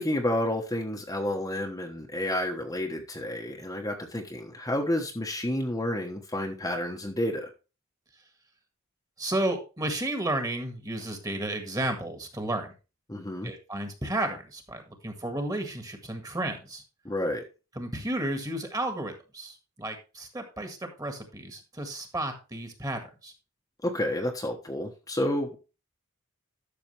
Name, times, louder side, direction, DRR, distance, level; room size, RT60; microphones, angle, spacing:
voice 1, 0.0-7.5 13.1-13.5 17.0-17.4 23.8-25.6, left 1 dB, 15° left, 1 dB, 1.1 m, -30 dB
voice 2, 9.2-12.7 13.4-16.8 17.7-23.3, right 1 dB, 15° right, 6 dB, 1.7 m, -32 dB
12.0 x 6.6 x 3.3 m, 0.31 s
head